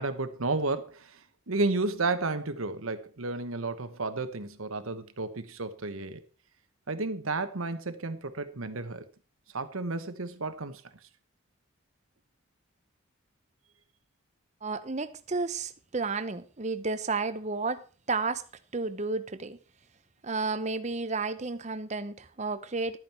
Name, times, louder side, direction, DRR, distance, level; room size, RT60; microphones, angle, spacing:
voice 1, 0.0-6.2 6.9-9.1 9.5-10.8, right 3 dB, 80° right, 1.2 m, -32 dB
voice 2, 14.6-18.4 18.7-19.6 20.2-23.0, right 3 dB, 35° right, 0.8 m, -32 dB
12.5 x 9.1 x 4.4 m
head